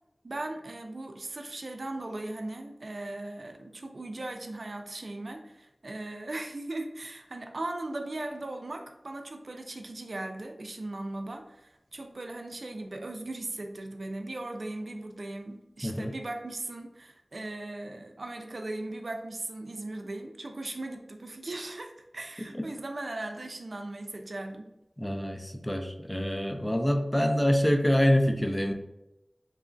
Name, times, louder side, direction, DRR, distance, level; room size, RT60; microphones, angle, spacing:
voice 1, 0.2-24.7, right 2 dB, 75° right, 4 dB, 0.3 m, -38 dB
voice 2, 25.0-28.7, equal, 10° left, 4 dB, 0.3 m, -26 dB
2.9 x 2.3 x 2.4 m, 0.89 s
wide cardioid pair, 60°, 0 cm